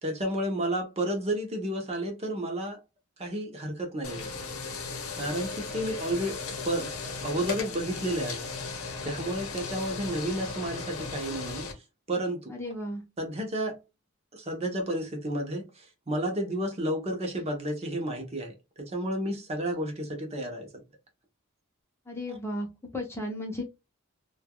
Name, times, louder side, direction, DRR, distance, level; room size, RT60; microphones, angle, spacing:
voice 1, 0.0-2.8 3.2-4.3 5.2-6.9 7.2-8.5 9.0-11.7 12.1-12.5 13.2-13.8 14.3-20.8, right 1 dB, 30° right, 0.7 m, -31 dB
sound 1, 4.0-11.7, left 4 dB, 80° left, 0.8 m, -36 dB
voice 2, 12.5-13.0 22.1-22.7 22.9-23.6, left 1 dB, 10° left, 0.6 m, -34 dB
3.2 x 2.3 x 2.2 m
head